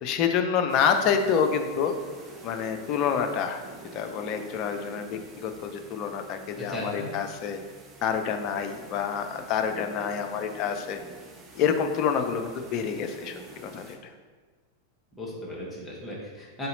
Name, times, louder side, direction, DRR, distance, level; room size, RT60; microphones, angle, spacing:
voice 1, 0.0-1.9 2.4-3.6 3.9-7.6 8.0-11.0 11.5-14.0, left 7 dB, 40° left, 6 dB, 0.4 m, -27 dB
sound 1, 0.7-14.0, right 3 dB, 25° right, 0.5 m, -48 dB
voice 2, 6.6-7.1 15.2-16.7, left 1 dB, 10° left, -6 dB, 1.1 m, -36 dB
3.8 x 2.8 x 3.9 m, 1.4 s
figure-of-eight pair, 90°, 0 cm